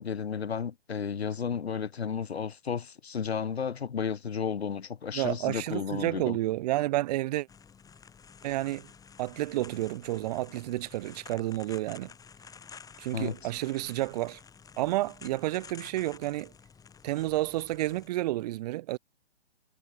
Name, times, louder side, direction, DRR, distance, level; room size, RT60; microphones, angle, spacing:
voice 1, 0.0-6.4 13.1-13.3, left 6 dB, 75° left, 1.4 m, -33 dB
voice 2, 5.1-7.5 8.4-8.9 9.2-12.1 13.0-14.4 14.8-16.5 17.0-19.0, right 17 dB, 40° right, 2.2 m, -30 dB
sound 1, 7.5-18.1, left 6 dB, 10° left, 5.0 m, -52 dB
figure-of-eight pair, 130°, 32 cm